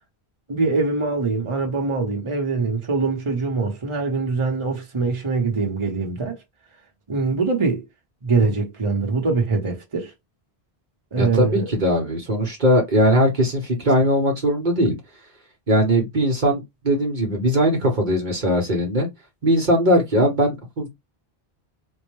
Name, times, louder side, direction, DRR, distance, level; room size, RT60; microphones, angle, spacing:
voice 1, 0.5-6.4 7.1-7.8 8.2-10.1 11.1-11.7, right 4 dB, 30° right, 1.0 m, -23 dB
voice 2, 11.2-14.9 15.7-19.1 19.4-20.9, equal, 50° right, 1.1 m, -20 dB
4.4 x 2.1 x 3.1 m
omnidirectional pair, 1.0 m